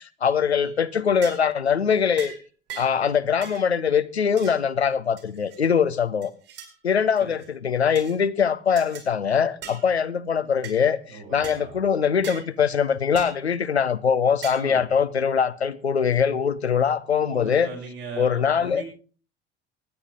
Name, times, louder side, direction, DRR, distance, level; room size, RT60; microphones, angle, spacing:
voice 1, 0.0-2.3 2.8-6.3 6.8-17.7 18.2-18.8, left 7 dB, 85° left, 0.8 m, -22 dB
sound 1, 0.6-0.8 1.2-1.5 2.2-2.4 2.7-3.0 3.4-3.7 4.4-4.6 5.2-5.6 6.2-6.7 7.2-7.5 8.0-8.2 8.8-9.1 9.6-9.9 10.6-10.8 11.4-11.6 12.2-12.5 13.2-13.4 14.4-14.7, right 8 dB, 50° right, 4.4 m, -40 dB
voice 2, 11.1-11.7 14.5-14.8 17.2-18.8, right 4 dB, 65° right, 6.3 m, -38 dB
23.0 x 9.8 x 3.7 m
figure-of-eight pair, 60°, 31 cm